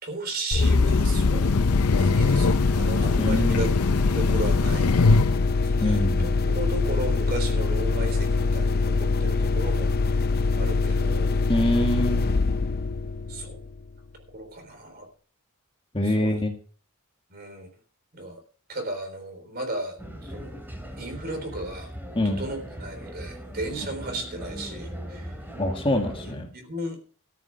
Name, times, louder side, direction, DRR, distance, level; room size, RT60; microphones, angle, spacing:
voice 1, 0.0-3.7 4.0-5.3 5.6-9.9 10.6-11.3 13.3-13.6 14.1-15.1 16.0-16.4 17.3-17.7 18.1-18.4 18.7-20.6 21.0-21.9 22.2-25.4 26.3-27.0, right 1 dB, 45° right, 5 dB, 3.7 m, -35 dB
sound 1, 0.5-14.0, left 3 dB, 45° left, 0.5 m, -24 dB
Train, 0.6-5.5, left 3 dB, 85° left, 0.6 m, -23 dB
voice 2, 3.2-3.7 5.8-6.3 11.5-12.2 15.9-16.5 22.2-22.4 25.6-26.5, left 1 dB, 25° left, 3 dB, 1.8 m, -24 dB
sound 2, 20.0-26.4, equal, 10° right, 2.5 m, -39 dB
13.5 x 7.4 x 6.4 m, 0.42 s
head